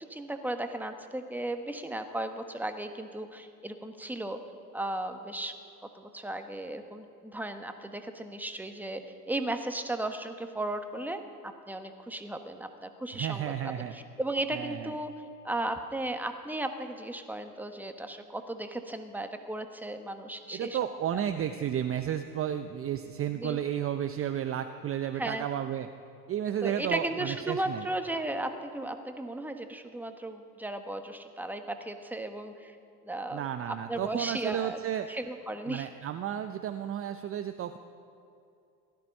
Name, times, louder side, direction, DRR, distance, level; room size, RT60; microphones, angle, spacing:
voice 1, 0.1-4.4 4.7-5.5 5.9-9.0 9.3-15.1 15.4-20.8 23.4-23.6 25.1-25.5 26.6-32.8 33.0-34.8 35.1-35.9, right 1 dB, 5° right, 7 dB, 1.2 m, -35 dB
voice 2, 13.1-13.9 14.5-14.9 20.5-25.9 26.3-27.8 33.3-35.1 35.7-37.8, right 10 dB, 30° right, 9 dB, 0.7 m, -32 dB
16.5 x 13.0 x 5.4 m, 2.6 s
hypercardioid pair, 75°, 47 cm